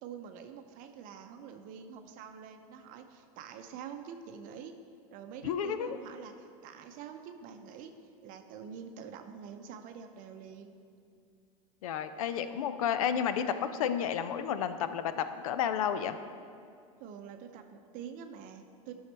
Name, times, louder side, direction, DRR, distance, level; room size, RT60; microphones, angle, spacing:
voice 1, 0.0-4.7 5.1-7.9 8.2-10.7 17.0-18.9, right 7 dB, 50° right, 6 dB, 0.6 m, -46 dB
voice 2, 5.4-6.0 11.8-16.2, left 8 dB, 80° left, 11 dB, 0.5 m, -31 dB
11.0 x 6.4 x 3.4 m, 2.4 s
hypercardioid pair, 105°, 17 cm